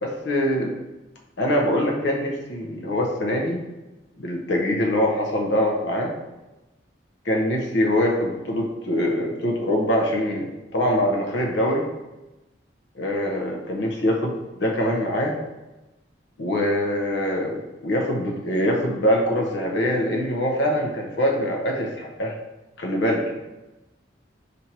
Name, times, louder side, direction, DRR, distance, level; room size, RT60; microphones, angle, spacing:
voice 1, 0.0-0.7 1.4-3.6 4.2-6.1 7.2-10.5 10.7-11.9 13.0-15.3 16.4-22.3 22.8-23.3, equal, 70° left, 0 dB, 0.6 m, -23 dB
4.2 x 2.6 x 4.4 m, 1.0 s
head